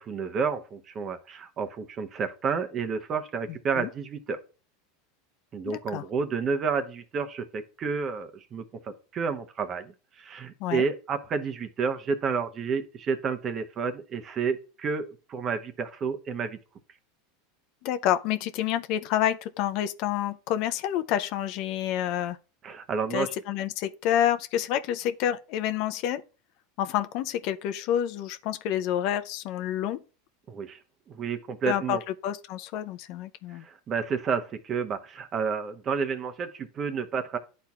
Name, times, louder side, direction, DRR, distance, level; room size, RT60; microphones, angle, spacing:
voice 1, 0.0-4.4 5.5-16.6 22.6-23.3 30.5-30.8 31.1-32.0 33.5-37.4, right 5 dB, 35° right, 0.9 m, -30 dB
voice 2, 5.7-6.0 10.6-10.9 17.8-22.4 23.1-26.2 26.8-30.0 31.7-33.7, left 11 dB, 55° left, 0.5 m, -28 dB
11.5 x 4.3 x 2.4 m
hypercardioid pair, 90°, 0 cm